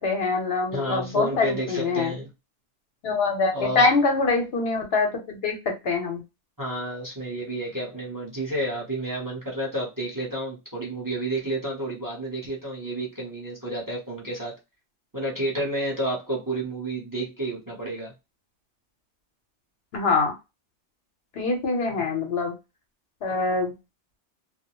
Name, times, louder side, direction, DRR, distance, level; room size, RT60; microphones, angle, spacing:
voice 1, 0.0-2.1 3.0-6.2 19.9-20.3 21.4-22.5 23.2-23.7, left 3 dB, 65° left, 0.9 m, -24 dB
voice 2, 0.7-2.3 3.5-3.9 6.6-14.5 15.1-18.1 22.0-22.1, right 1 dB, 20° right, 0.8 m, -30 dB
2.3 x 2.0 x 2.9 m
omnidirectional pair, 1.2 m